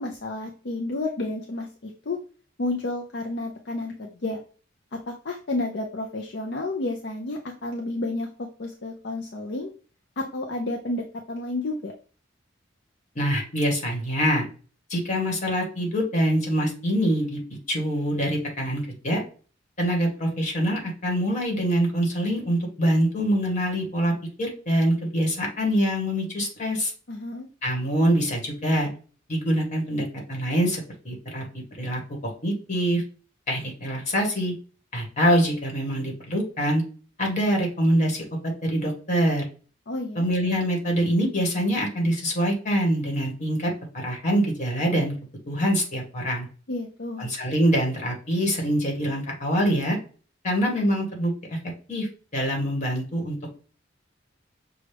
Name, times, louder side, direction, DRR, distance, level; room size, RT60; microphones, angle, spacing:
voice 1, 0.0-2.2 2.6-4.4 4.9-9.7 10.2-11.9 27.1-27.5 39.9-40.3 46.7-47.3, left 2 dB, 55° left, 1 dB, 0.6 m, -31 dB
voice 2, 13.1-14.4 14.9-17.4 17.7-19.2 19.8-26.9 27.6-28.9 29.3-31.4 31.8-32.0 32.4-33.0 33.5-34.5 34.9-36.8 37.2-39.4 40.1-45.1 45.5-46.5 47.2-50.0 50.4-51.6 51.9-53.5, equal, 40° left, 0 dB, 1.6 m, -24 dB
6.4 x 2.3 x 3.4 m, 0.39 s
head